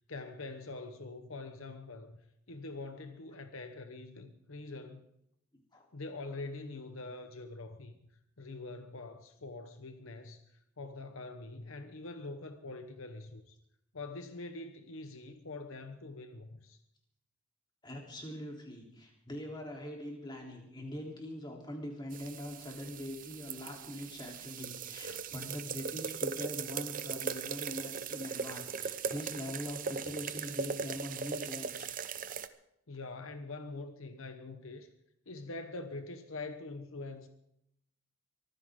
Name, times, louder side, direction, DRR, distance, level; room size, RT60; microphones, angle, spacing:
voice 1, 0.1-2.2 2.5-5.0 5.9-8.0 8.4-13.6 13.9-16.8 32.9-34.9 35.3-37.3, left 3 dB, 70° left, 1.1 m, -44 dB
voice 2, 17.8-31.9, left 1 dB, 20° left, 3.6 m, -43 dB
sound 1, 22.1-32.5, right 6 dB, 40° right, 0.8 m, -39 dB
24.0 x 15.0 x 3.8 m
head